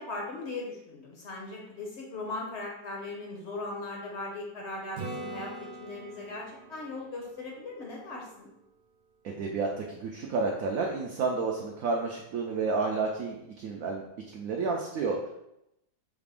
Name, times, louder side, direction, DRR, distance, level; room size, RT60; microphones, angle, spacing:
voice 1, 0.0-8.5, left 2 dB, 60° left, -1 dB, 0.7 m, -39 dB
Acoustic guitar / Strum, 5.0-8.7 13.6-13.7, right 2 dB, 60° right, 1.3 m, -43 dB
voice 2, 9.2-14.0 14.3-15.3, right 4 dB, 80° right, 0 dB, 0.7 m, -30 dB
5.0 x 2.4 x 3.4 m, 0.83 s
omnidirectional pair, 2.0 m